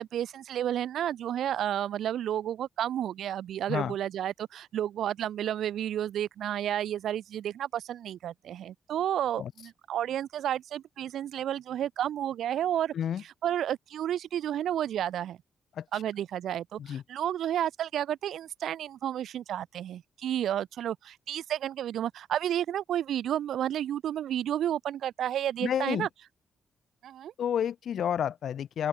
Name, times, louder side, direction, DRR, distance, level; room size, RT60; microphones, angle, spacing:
voice 1, 0.0-12.9 13.4-15.4 15.9-26.1 27.0-27.3, right 11 dB, 75° right, 0.6 m, -31 dB
voice 2, 25.6-26.1 27.4-28.9, left 9 dB, 60° left, 1.3 m, -30 dB
open air
wide cardioid pair, 170°, 0 cm